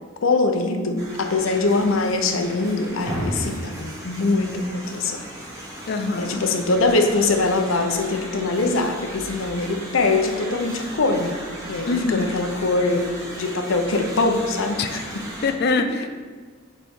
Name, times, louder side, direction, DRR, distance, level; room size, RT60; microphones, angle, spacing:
voice 1, 0.2-5.2 6.2-11.4 11.7-13.1 13.4-15.0, left 3 dB, 85° left, 5 dB, 0.7 m, -22 dB
sound 1, 1.0-15.5, right 1 dB, 15° right, 1.5 m, -36 dB
voice 2, 5.9-6.4 11.9-12.4 14.8-14.9 15.4-16.1, left 3 dB, 50° left, 7 dB, 0.5 m, -24 dB
7.1 x 4.1 x 3.6 m, 1.6 s
head